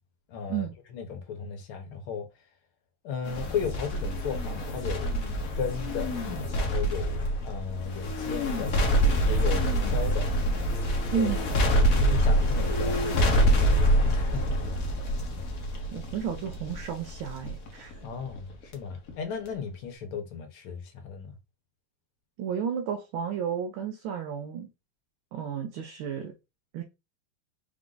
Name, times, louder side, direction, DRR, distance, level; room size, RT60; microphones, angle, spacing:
voice 1, 0.3-0.7 0.9-2.3 3.0-5.2 5.6-6.2 6.5-8.7 9.2-10.3 11.1-11.4 11.8-14.6 18.0-21.3, left 6 dB, 80° left, 1.8 m, -35 dB
sound 1, 3.2-18.7 19.1-19.2, equal, 55° left, 1.1 m, -26 dB
voice 2, 15.9-18.0 22.4-24.7 25.3-26.3 26.7-26.8, right 7 dB, 75° right, 1.5 m, -32 dB
4.6 x 2.6 x 3.8 m
omnidirectional pair, 2.3 m